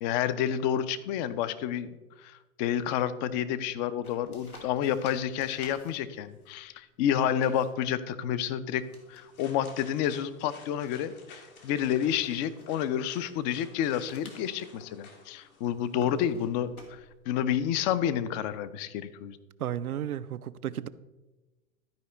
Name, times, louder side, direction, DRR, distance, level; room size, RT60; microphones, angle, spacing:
voice 1, 0.0-2.0 2.2-8.8 9.1-17.0 17.3-19.4, left 9 dB, 35° left, 14 dB, 0.5 m, -29 dB
sound 1, 4.0-18.4, left 2 dB, 90° left, 1.7 m, -57 dB
sound 2, 8.8-16.3, left 4 dB, 70° left, 1.9 m, -52 dB
voice 2, 19.6-20.9, right 10 dB, 85° right, 14 dB, 0.5 m, -33 dB
12.0 x 4.9 x 4.3 m, 1.1 s
figure-of-eight pair, 100°, 42 cm